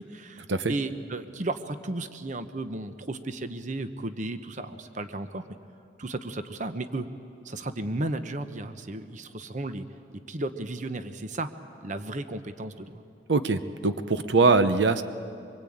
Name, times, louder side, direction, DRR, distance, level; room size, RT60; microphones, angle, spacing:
voice 1, 0.0-5.4 6.0-7.1 7.4-9.8 10.1-11.5 11.8-13.0, right 2 dB, 45° right, 9 dB, 0.9 m, -34 dB
voice 2, 13.3-15.0, right 3 dB, 80° right, 10 dB, 0.9 m, -22 dB
24.5 x 23.0 x 8.7 m, 2.5 s
head